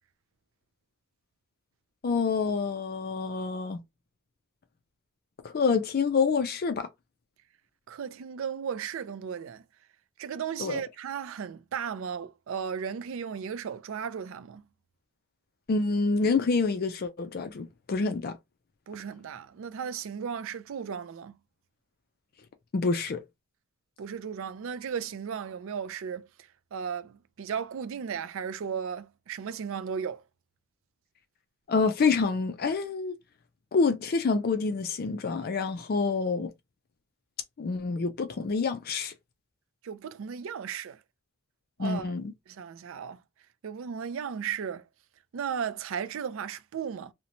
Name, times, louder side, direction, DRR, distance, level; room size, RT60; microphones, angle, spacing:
voice 1, 2.0-3.8 5.4-6.9 10.6-10.8 15.7-18.4 22.7-23.2 31.7-33.2 33.7-36.5 37.6-39.1 41.8-42.3, left 4 dB, 45° left, 0.4 m, -27 dB
voice 2, 7.9-9.6 10.2-14.6 18.9-21.3 24.0-26.3 26.7-30.2 39.8-41.0 41.8-42.1 42.5-43.2 43.6-44.9 45.3-47.1, right 7 dB, 60° right, 0.3 m, -35 dB
2.9 x 2.1 x 2.6 m
head